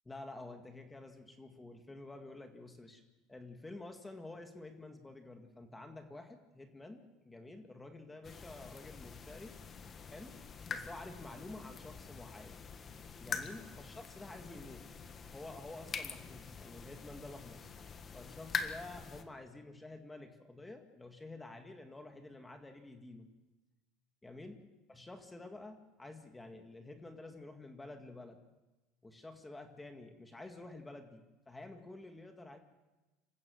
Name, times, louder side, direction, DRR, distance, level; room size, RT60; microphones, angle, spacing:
voice 1, 0.1-3.0 3.3-9.5 10.0-10.4 10.7-12.6 13.2-14.9 15.3-17.7 18.1-23.3 24.2-24.6 24.9-28.4 29.0-32.6, left 2 dB, 10° left, 5 dB, 2.0 m, -50 dB
sound 1, 8.2-19.2, left 5 dB, 30° left, 1.6 m, -45 dB
27.0 x 15.0 x 6.4 m, 1.1 s
supercardioid pair, 125°, 0 cm